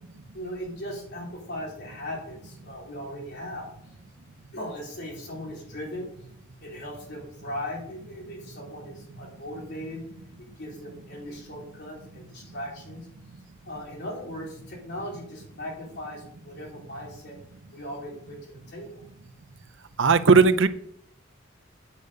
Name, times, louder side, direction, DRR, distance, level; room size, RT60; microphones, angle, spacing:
voice 1, 0.3-3.9 4.5-6.1 6.6-10.1 10.6-13.1 13.7-17.4 17.7-19.0, left 1 dB, 55° left, -2 dB, 3.9 m, -38 dB
voice 2, 20.0-20.7, right 4 dB, 65° right, 12 dB, 0.6 m, -17 dB
8.4 x 6.7 x 6.7 m, 0.71 s
head